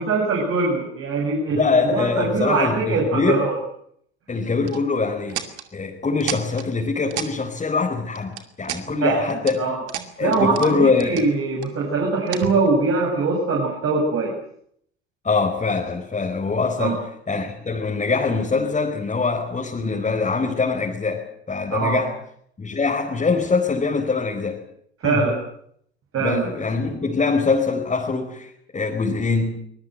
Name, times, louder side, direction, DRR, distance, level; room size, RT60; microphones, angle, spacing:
voice 1, 0.0-3.6 9.0-9.8 10.2-14.3 16.8-17.0 21.7-22.0 25.0-25.3 26.1-26.5, right 3 dB, 40° right, -1 dB, 7.4 m, -22 dB
voice 2, 1.5-3.5 4.3-5.4 5.7-9.7 10.2-11.3 15.2-17.0 17.3-22.1 22.6-24.6 25.0-25.3 26.2-29.6, left 4 dB, 20° left, 0 dB, 4.7 m, -23 dB
sound 1, 4.7-4.8 5.3-5.7 6.2-6.7 7.1-7.3 8.1-8.8 9.3-9.5 9.9-10.7 11.0-11.7 12.3-12.9, right 10 dB, 75° right, 2.6 m, -31 dB
24.0 x 21.0 x 7.8 m, 0.67 s
hypercardioid pair, 70°, 34 cm